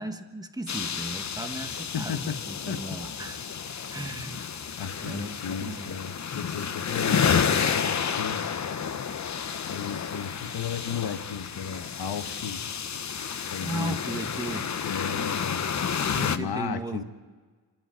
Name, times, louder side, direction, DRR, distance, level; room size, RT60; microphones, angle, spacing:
voice 1, 0.0-3.5 3.9-4.7 5.0-5.9 6.9-7.0 13.6-14.7 16.1-17.0, right 1 dB, 10° right, 7 dB, 1.4 m, -36 dB
sound 1, 0.7-16.4, left 7 dB, 45° left, 0.9 m, -30 dB
voice 2, 1.9-2.4 2.7-2.8 4.8-8.4 9.6-12.6 13.5-14.0 14.8-15.6 16.1-17.0, left 7 dB, 65° left, 8 dB, 1.3 m, -34 dB
27.5 x 12.5 x 9.3 m, 1.4 s
cardioid pair, 110°, 41 cm